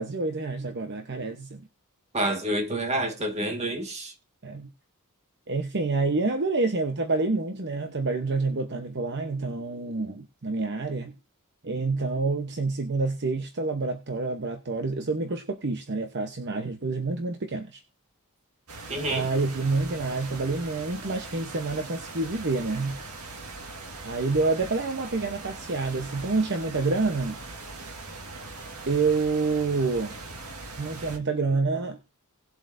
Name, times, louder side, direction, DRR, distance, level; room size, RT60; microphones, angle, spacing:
voice 1, 0.0-1.7 4.4-4.7 5.5-11.1 11.6-17.8 19.1-23.0 24.0-27.4 28.9-30.2 30.8-32.0, right 3 dB, 50° right, 0.9 m, -28 dB
voice 2, 2.1-4.1 18.9-19.3, right 1 dB, 30° right, 1.7 m, -28 dB
sound 1, 18.7-31.2, right 3 dB, 85° right, 1.8 m, -41 dB
18.5 x 7.7 x 2.6 m
head